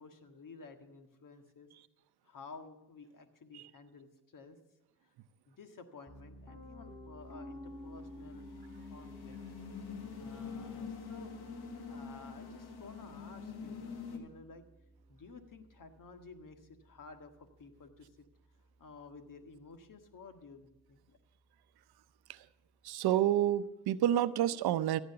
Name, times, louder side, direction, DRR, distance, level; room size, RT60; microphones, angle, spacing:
voice 1, 0.0-1.7 2.2-4.6 5.0-5.1 5.5-9.4 10.2-11.3 11.9-14.7 15.1-18.3 18.8-21.2, left 4 dB, 60° left, 7 dB, 1.7 m, -53 dB
Piano, 6.1-18.0, equal, 5° left, 5.5 m, -53 dB
sound 1, 8.1-14.2, left 5 dB, 85° left, 1.7 m, -45 dB
voice 2, 22.8-25.0, right 12 dB, 80° right, 14 dB, 0.7 m, -29 dB
15.0 x 8.1 x 6.8 m, 0.99 s
supercardioid pair, 50°, 37 cm